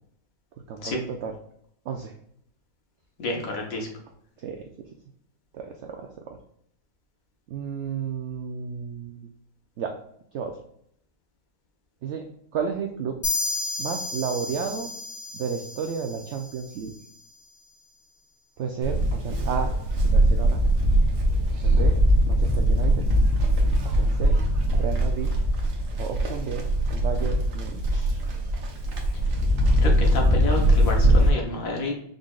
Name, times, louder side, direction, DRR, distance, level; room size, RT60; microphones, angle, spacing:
voice 1, 0.7-1.3 1.9-2.1 4.4-4.6 5.5-6.4 7.5-9.2 9.8-10.0 10.3-10.6 12.0-12.3 12.5-13.2 13.8-14.9 15.3-16.9 18.6-19.7 20.0-20.6 21.6-22.0 22.3-23.1 23.8-24.4 24.7-25.3 26.0-26.6 26.9-28.2, right 6 dB, 75° right, 4 dB, 0.6 m, -32 dB
voice 2, 3.2-3.9 29.8-31.9, left 2 dB, 60° left, 0 dB, 1.4 m, -29 dB
sound 1, 13.2-16.8, left 3 dB, 25° left, 1.5 m, -32 dB
Livestock farm animals working animals, 18.8-31.3, right 1 dB, 60° right, 1.1 m, -21 dB
5.3 x 3.7 x 2.4 m, 0.70 s
omnidirectional pair, 1.7 m